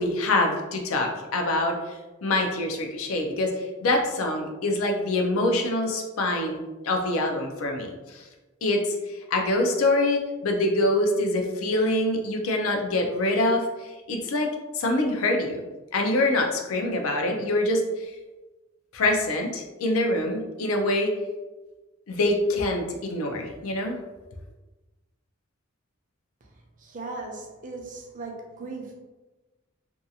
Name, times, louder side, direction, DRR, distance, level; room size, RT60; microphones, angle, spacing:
voice 1, 0.0-8.2 8.6-14.5 14.7-15.6 15.9-18.1 18.9-21.1 22.1-23.9, left 1 dB, 80° left, 2 dB, 0.5 m, -25 dB
voice 2, 26.8-29.0, right 3 dB, 40° right, 1 dB, 0.5 m, -38 dB
2.6 x 2.3 x 2.6 m, 1.1 s
head